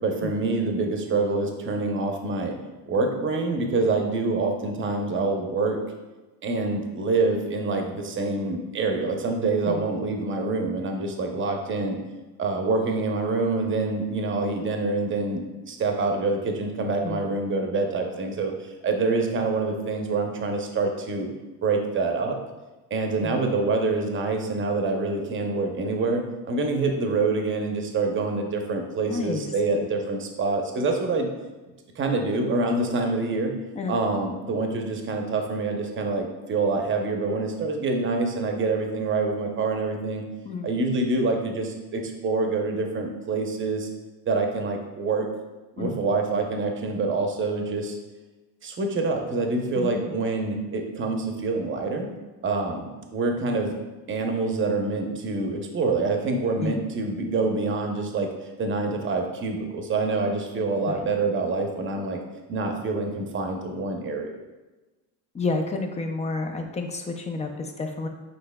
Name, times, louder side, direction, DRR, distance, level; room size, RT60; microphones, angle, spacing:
voice 1, 0.0-2.6 2.9-5.8 6.4-12.0 12.4-18.5 18.8-21.3 21.6-22.4 22.9-31.3 32.0-33.5 33.9-40.2 40.6-43.9 44.3-45.3 45.8-48.0 48.6-52.1 52.4-53.8 54.1-58.3 58.6-62.2 62.5-64.3, right 3 dB, 30° right, 3 dB, 0.7 m, -26 dB
voice 2, 29.0-29.5 33.8-34.0 40.4-40.7 45.8-46.0 49.7-50.2 56.6-56.8 60.9-61.0 65.3-68.1, left 3 dB, 15° left, 5 dB, 0.4 m, -30 dB
5.7 x 3.9 x 2.2 m, 1.2 s
supercardioid pair, 105°, 41 cm